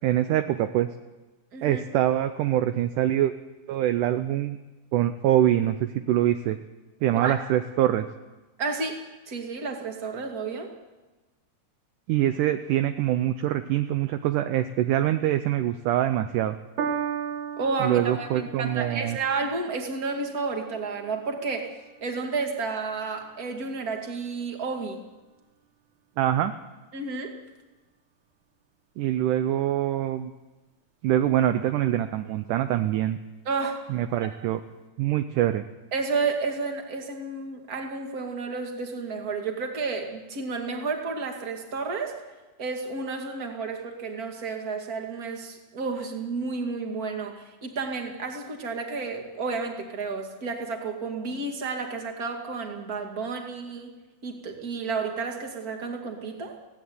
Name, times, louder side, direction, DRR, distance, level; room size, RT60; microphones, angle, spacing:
voice 1, 0.0-0.9 1.6-3.3 3.7-4.6 4.9-6.6 7.0-8.1 12.1-16.6 17.8-19.2 26.2-26.5 29.0-30.3 31.0-33.2 33.9-34.6 35.0-35.6, right 12 dB, 80° right, 10 dB, 1.9 m, -24 dB
voice 2, 8.6-9.0 9.3-10.7 17.6-21.7 22.0-25.0 26.9-27.3 33.4-33.8 35.9-42.2 42.6-53.9 54.2-56.6, right 4 dB, 30° right, 3 dB, 2.2 m, -31 dB
Piano, 16.8-23.4 24.2-24.3, right 7 dB, 60° right, 2.4 m, -37 dB
17.0 x 17.0 x 9.5 m, 1.2 s
omnidirectional pair, 4.5 m